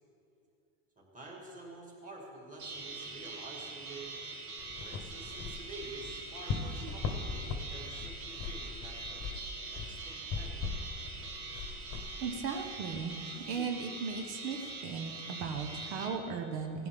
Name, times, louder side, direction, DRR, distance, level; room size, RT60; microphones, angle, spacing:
voice 1, 1.0-4.1 4.8-9.3 9.7-10.8, right 2 dB, 15° right, -2 dB, 2.1 m, -49 dB
sound 1, 2.6-16.1, right 3 dB, 65° right, 2.9 m, -43 dB
sound 2, 4.6-13.1, left 5 dB, 30° left, 1.0 m, -40 dB
voice 2, 12.2-16.9, right 5 dB, 80° right, 4 dB, 1.3 m, -37 dB
16.5 x 10.5 x 3.7 m, 2.6 s
supercardioid pair, 150°, 47 cm